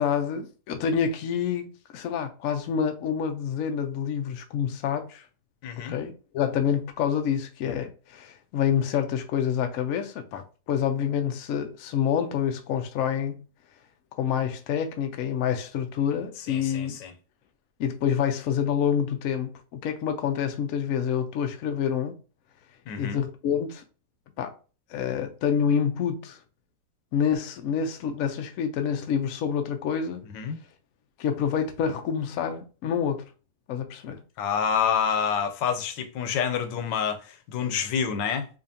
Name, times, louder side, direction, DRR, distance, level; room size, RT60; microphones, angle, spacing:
voice 1, 0.0-5.2 5.9-13.4 14.1-17.0 17.8-22.1 23.0-23.8 24.4-24.5 24.9-26.4 27.1-30.3 31.2-33.3 33.7-34.2, left 8 dB, 65° left, 0.8 m, -27 dB
voice 2, 5.6-6.0 16.4-17.1 22.9-23.2 30.3-30.6 34.4-38.5, left 7 dB, 90° left, 1.3 m, -28 dB
5.1 x 2.4 x 2.7 m
omnidirectional pair, 1.9 m